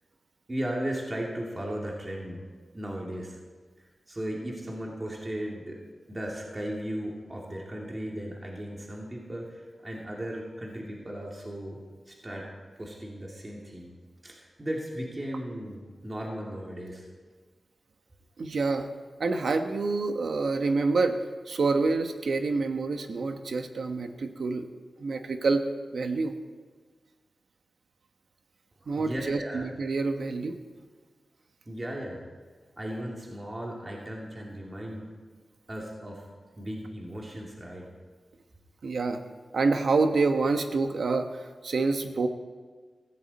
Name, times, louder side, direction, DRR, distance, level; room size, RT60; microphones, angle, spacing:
voice 1, 0.5-2.4 2.7-3.4 4.1-5.8 6.1-11.8 12.1-12.5 12.8-13.9 14.2-17.1 28.8-29.7 31.7-32.2 32.7-35.1 35.7-36.2 36.6-37.8, right 1 dB, 25° right, -2 dB, 2.8 m, -36 dB
voice 2, 18.4-18.9 19.2-24.7 25.0-25.6 25.9-26.3 28.9-30.6 38.8-39.2 39.5-42.3, right 3 dB, 75° right, 6 dB, 1.2 m, -27 dB
16.0 x 16.0 x 4.3 m, 1.5 s
wide cardioid pair, 90°, 0 cm